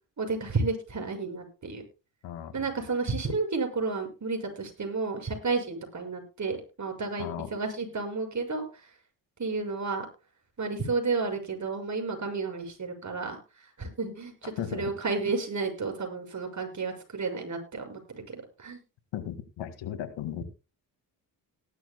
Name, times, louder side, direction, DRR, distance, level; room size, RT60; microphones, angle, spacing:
voice 1, 0.2-1.8 2.5-8.9 9.4-10.1 10.6-13.4 13.6-18.8, right 4 dB, 40° right, 4 dB, 6.3 m, -32 dB
voice 2, 2.2-2.7 7.2-7.5 14.6-14.9 19.1-20.4, left 10 dB, 90° left, 10 dB, 2.1 m, -36 dB
18.5 x 12.0 x 2.2 m, 0.30 s
cardioid pair, 70°, 43 cm